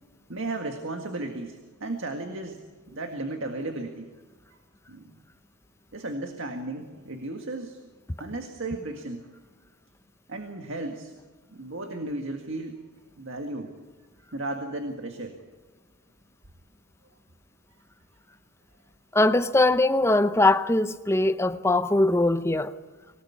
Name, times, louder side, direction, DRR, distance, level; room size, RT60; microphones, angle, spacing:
voice 1, 0.3-2.6 2.9-4.1 4.9-5.2 5.9-7.8 8.2-9.3 10.3-11.1 11.5-12.8 13.2-13.7 14.3-15.4, right 2 dB, 55° right, 1.9 m, -34 dB
voice 2, 19.1-22.7, left 2 dB, 10° left, 0.7 m, -21 dB
24.5 x 18.0 x 8.5 m
head